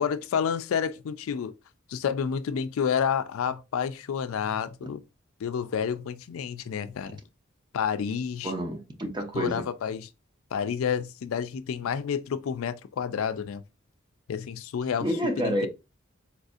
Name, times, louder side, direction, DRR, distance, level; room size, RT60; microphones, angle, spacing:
voice 1, 0.0-1.5 1.9-5.0 5.4-7.2 7.7-8.5 9.3-10.1 10.5-13.6 14.3-15.1 15.4-15.7, left 7 dB, 85° left, 0.4 m, -29 dB
voice 2, 8.4-9.6 15.0-15.7, equal, 20° right, 0.6 m, -28 dB
4.0 x 2.6 x 2.4 m
head